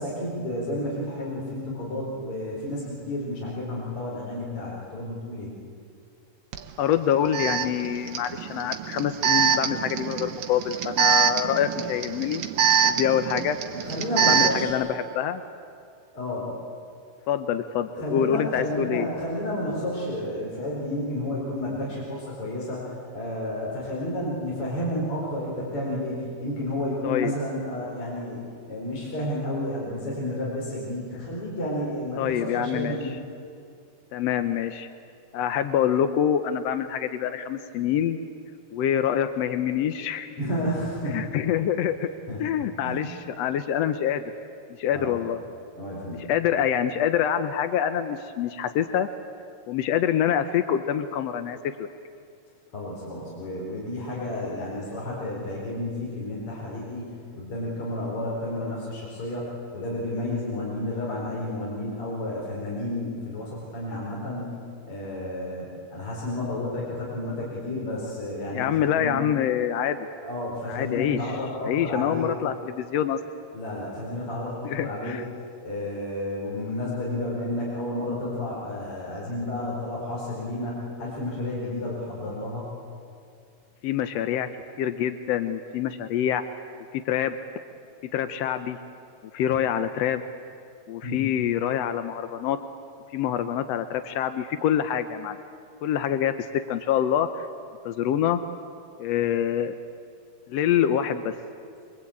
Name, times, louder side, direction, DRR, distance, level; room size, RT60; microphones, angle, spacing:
voice 1, 0.0-5.5 13.7-14.8 16.1-16.6 18.0-28.4 28.7-33.2 40.4-41.4 42.3-42.4 42.8-43.1 44.9-45.2 45.8-46.3 52.7-64.6 64.8-69.3 70.2-72.3 73.5-75.2 75.6-82.7 91.0-91.2, left 1 dB, 40° left, -5 dB, 5.4 m, -31 dB
Alarm, 6.5-6.6 7.3-14.7, right 8 dB, 65° right, 1.4 m, -24 dB
voice 2, 6.8-12.4 12.8-13.6 14.3-15.4 17.3-19.1 27.0-27.3 32.2-33.0 34.1-34.9 35.3-38.2 38.7-40.3 41.1-42.1 42.4-44.2 44.8-45.4 46.3-49.1 49.7-51.9 68.5-70.1 70.7-71.2 71.6-73.2 74.6-75.2 83.8-84.5 84.8-86.4 86.9-87.4 88.1-88.8 89.3-90.3 90.9-92.6 93.1-95.4 95.8-97.5 97.8-98.4 99.0-99.7 100.5-101.3, left 9 dB, 75° left, 9 dB, 1.5 m, -26 dB
24.5 x 24.0 x 8.6 m, 2.3 s
omnidirectional pair, 3.9 m